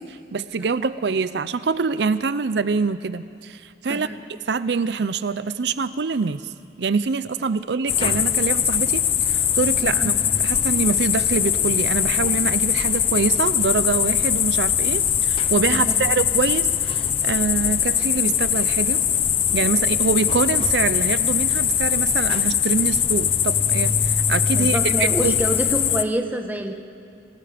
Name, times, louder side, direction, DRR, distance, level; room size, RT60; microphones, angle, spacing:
voice 1, 0.0-4.1 4.5-6.5 6.8-10.1 10.4-19.0 19.5-25.3, right 4 dB, 80° right, 14 dB, 0.5 m, -25 dB
sound 1, 7.9-26.0, left 9 dB, 30° left, 0.5 m, -21 dB
voice 2, 15.7-16.0 24.5-26.7, right 1 dB, 10° right, 4 dB, 1.2 m, -27 dB
27.5 x 18.5 x 5.1 m, 2.6 s
head